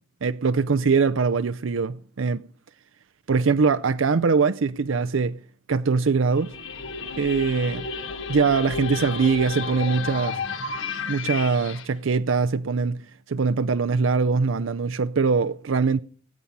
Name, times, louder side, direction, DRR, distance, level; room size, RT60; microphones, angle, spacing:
voice 1, 0.2-2.4 3.3-5.4 5.7-6.5 7.2-7.9 8.3-10.4 11.1-13.0 13.3-16.0, right 4 dB, 90° right, 0.5 m, -22 dB
sound 1, 6.3-11.8, left 5 dB, 80° left, 1.5 m, -32 dB
19.5 x 8.6 x 5.5 m
head